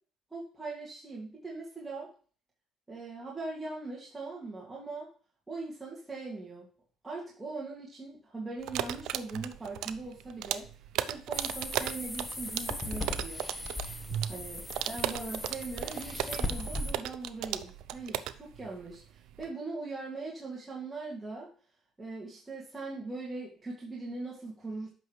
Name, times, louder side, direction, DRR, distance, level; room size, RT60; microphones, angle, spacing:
voice 1, 0.3-2.1 2.9-5.1 5.5-6.7 7.0-10.7 11.0-13.4 14.3-21.5 22.0-24.9, right 3 dB, 15° right, -5 dB, 2.1 m, -40 dB
sound 1, 8.6-19.5, right 11 dB, 80° right, 0.4 m, -36 dB
sound 2, 11.3-16.9, left 1 dB, 10° left, 1.0 m, -38 dB
8.2 x 6.0 x 3.2 m, 0.41 s
cardioid pair, 100°, 0 cm